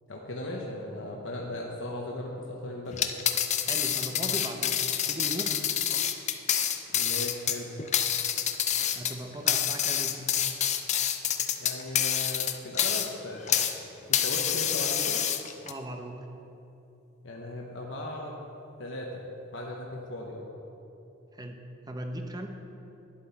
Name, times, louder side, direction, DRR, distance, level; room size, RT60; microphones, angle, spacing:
voice 1, 0.1-3.1 6.9-7.7 11.6-13.8 14.1-15.2 17.2-18.4 18.8-19.2 19.5-20.5, left 1 dB, 70° left, -2 dB, 1.1 m, -37 dB
sound 1, 2.9-13.8 14.1-15.7, left 9 dB, 35° left, 0.6 m, -27 dB
voice 2, 3.6-5.6 8.9-10.3 15.6-16.2 21.3-21.6 21.9-22.5, right 1 dB, 20° right, 4 dB, 0.9 m, -38 dB
12.0 x 10.0 x 4.2 m, 2.9 s
head